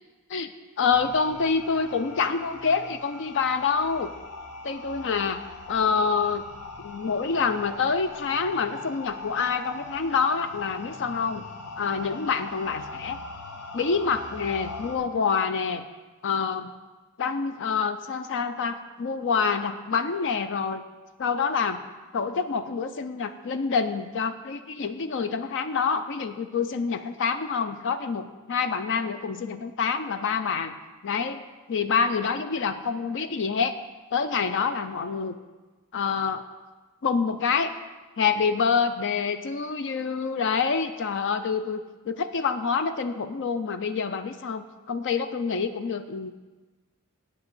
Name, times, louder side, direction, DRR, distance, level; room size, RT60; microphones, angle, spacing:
voice 1, 0.8-4.1 4.6-5.4 5.7-6.4 6.8-11.4 11.8-13.2 13.7-15.8 16.2-16.7 17.2-20.8 21.2-21.8 22.1-30.8 31.0-31.4 31.7-33.7 34.1-35.3 35.9-36.4 37.0-37.7 38.2-46.3, left 5 dB, 55° left, 10 dB, 0.5 m, -27 dB
sound 1, 0.9-15.0, left 3 dB, 80° left, 0.9 m, -41 dB
8.0 x 6.1 x 7.6 m, 1.2 s
head